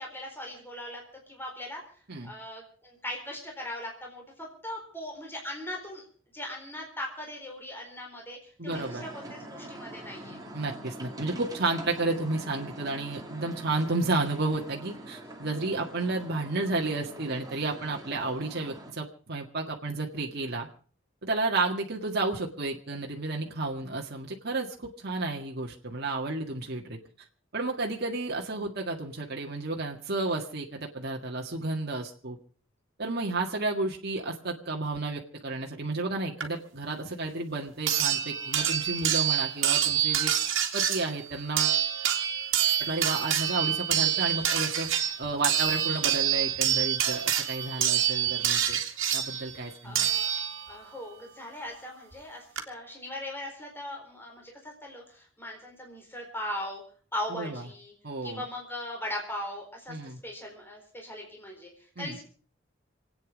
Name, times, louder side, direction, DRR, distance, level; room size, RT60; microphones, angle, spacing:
voice 1, 0.0-1.8 2.2-6.1 6.3-10.4 49.8-50.3 50.7-56.8 57.1-57.9 58.2-60.0 60.2-62.2, left 1 dB, 10° left, 0 dB, 4.2 m, -39 dB
voice 2, 8.6-9.1 10.5-20.7 21.2-27.0 27.5-32.4 33.0-40.3 40.7-41.8 42.8-44.9 45.2-48.8 49.1-50.1 57.3-57.6 58.0-58.4 59.9-60.2 62.0-62.2, right 2 dB, 55° right, 0 dB, 1.8 m, -32 dB
sound 1, 8.7-18.9, right 1 dB, 20° right, 2.5 m, -44 dB
sound 2, 36.4-36.5 37.9-50.9 52.1-52.2 52.6-52.7, right 10 dB, 75° right, 2.2 m, -27 dB
27.5 x 9.3 x 5.1 m, 0.43 s
head